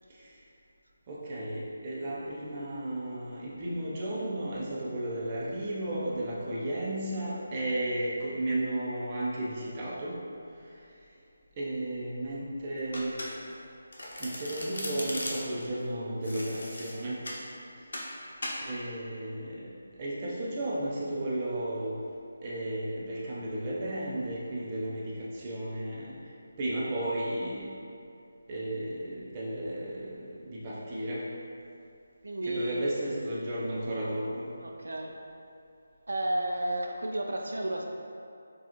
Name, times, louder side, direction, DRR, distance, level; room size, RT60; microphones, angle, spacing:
voice 1, 1.1-10.2 11.6-13.1 14.2-17.2 18.7-19.6 20.0-22.0 22.4-26.1 26.6-27.7 28.5-30.1 30.4-31.2 32.4-34.5, right 1 dB, 25° right, -6 dB, 0.6 m, -33 dB
Domestic sounds home sounds, 12.9-13.6 13.9-15.6 16.2-17.4 17.9-18.1 18.4-18.6, left 1 dB, 80° left, 0.8 m, -37 dB
voice 2, 32.2-32.9 34.6-35.2 36.1-37.9, right 1 dB, 90° right, 1 dB, 0.4 m, -32 dB
4.8 x 2.4 x 2.9 m, 2.5 s
figure-of-eight pair, 170°, 0 cm